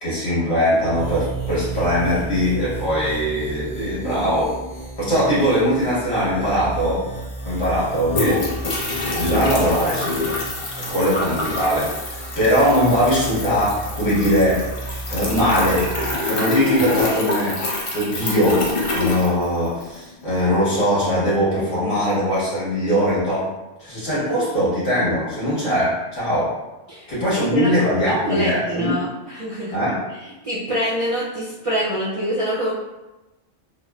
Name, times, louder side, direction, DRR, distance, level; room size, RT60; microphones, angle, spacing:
voice 1, 0.0-4.5 5.0-7.1 7.4-8.4 9.2-10.2 10.8-14.7 15.1-15.9 16.2-17.6 17.9-23.5 23.8-26.6 27.1-28.9 29.7-30.0, equal, 70° left, -10 dB, 1.8 m, -21 dB
sound 1, 0.7-16.1, right 3 dB, 5° right, 0.6 m, -33 dB
sound 2, 7.2-20.0, left 2 dB, 45° left, 0.4 m, -26 dB
voice 2, 26.9-27.7 28.3-29.8 30.4-32.7, equal, 50° right, -8 dB, 0.4 m, -25 dB
3.7 x 2.0 x 2.2 m, 1.1 s
omnidirectional pair, 1.1 m